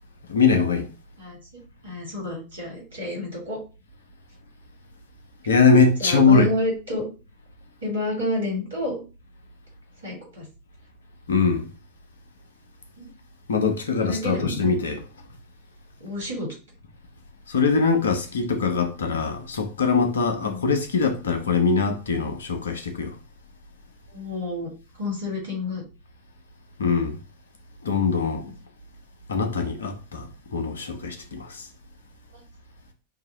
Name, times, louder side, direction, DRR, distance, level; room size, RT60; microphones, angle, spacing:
voice 1, 0.3-0.9 5.5-6.5 11.3-11.7 13.5-15.0 17.5-23.2 26.8-27.2 27.8-28.5 29.3-31.7, left 4 dB, 70° left, 0.8 m, -22 dB
voice 2, 1.8-3.6 6.0-7.0 7.8-9.0 10.0-10.4 13.0-13.1 13.6-14.8 16.0-16.5 20.4-20.7 24.1-24.7 25.0-25.8 28.4-28.5 32.3-32.4, left 1 dB, 70° right, 2.7 m, -30 dB
5.7 x 2.8 x 3.0 m
figure-of-eight pair, 90°, 0 cm